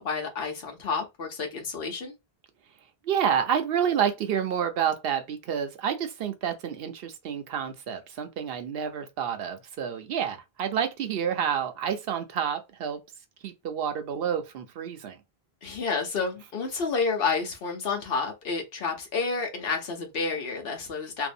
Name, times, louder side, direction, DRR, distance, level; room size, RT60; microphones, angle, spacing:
voice 1, 0.0-2.2 15.6-21.3, left 4 dB, 65° left, 0.9 m, -30 dB
voice 2, 3.0-13.0 13.4-15.2, right 8 dB, 70° right, 0.8 m, -29 dB
2.7 x 2.1 x 2.5 m
omnidirectional pair, 1.1 m